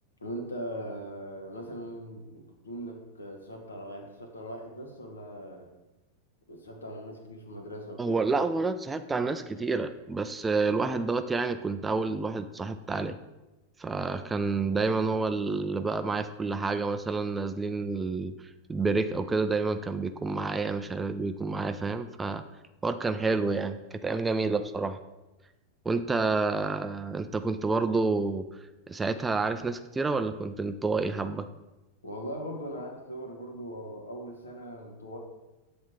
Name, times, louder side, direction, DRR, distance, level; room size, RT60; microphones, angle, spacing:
voice 1, 0.2-5.7 6.5-8.2 32.0-35.2, equal, 75° left, 2 dB, 1.1 m, -40 dB
voice 2, 8.0-13.2 13.8-18.3 18.7-22.4 22.8-25.0 25.9-28.4 28.9-31.5, right 3 dB, 15° right, 10 dB, 0.3 m, -29 dB
7.4 x 3.4 x 4.3 m, 1.0 s
figure-of-eight pair, 90°, 0 cm